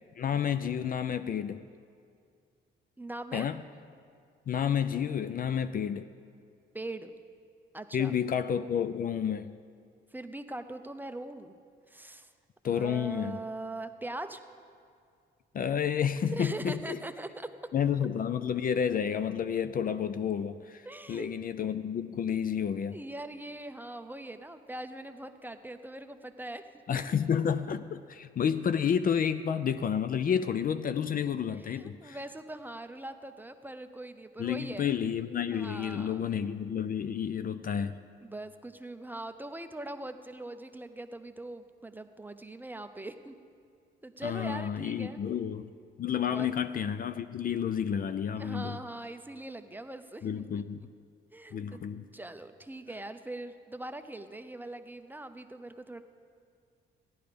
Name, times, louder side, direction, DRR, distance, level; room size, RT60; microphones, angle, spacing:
voice 1, 0.2-1.6 3.3-3.6 4.5-6.1 7.9-9.5 12.6-13.4 15.5-17.0 17.7-20.8 21.1-23.0 26.9-32.2 34.4-37.9 44.2-45.7 46.0-48.8 50.2-50.8 51.5-52.1, left 8 dB, 45° left, 12 dB, 0.5 m, -30 dB
voice 2, 3.0-3.5 6.7-7.1 7.7-8.2 10.1-11.5 11.9-12.3 12.7-14.4 16.3-17.5 20.8-21.3 22.9-26.6 26.9-27.0 31.5-34.9 35.5-36.3 38.2-43.3 44.0-45.2 45.5-45.6 46.3-46.5 48.4-50.6 51.3-51.8 52.1-56.0, right 2 dB, 10° right, 8 dB, 0.7 m, -41 dB
14.5 x 11.0 x 5.1 m, 2.3 s
cardioid pair, 90°, 20 cm